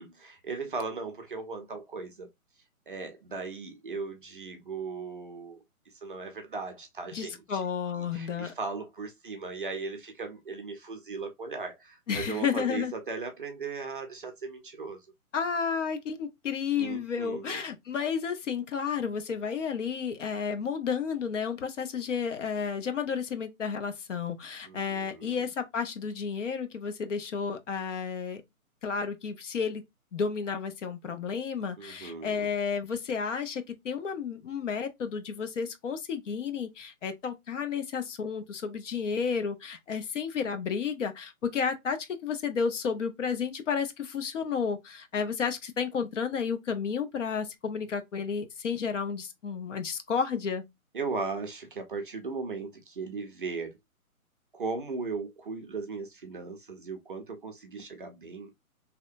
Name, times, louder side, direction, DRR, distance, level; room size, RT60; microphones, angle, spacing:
voice 1, 0.0-2.3 2.9-5.6 5.9-7.6 8.0-15.1 16.8-17.6 24.7-25.4 31.8-32.5 50.9-53.8 54.5-58.5, right 4 dB, 40° right, 0.5 m, -37 dB
voice 2, 7.1-8.5 12.1-12.9 15.3-28.4 28.8-29.8 30.1-50.6, left 6 dB, 55° left, 0.7 m, -32 dB
2.8 x 2.1 x 2.5 m
hypercardioid pair, 145°, 43 cm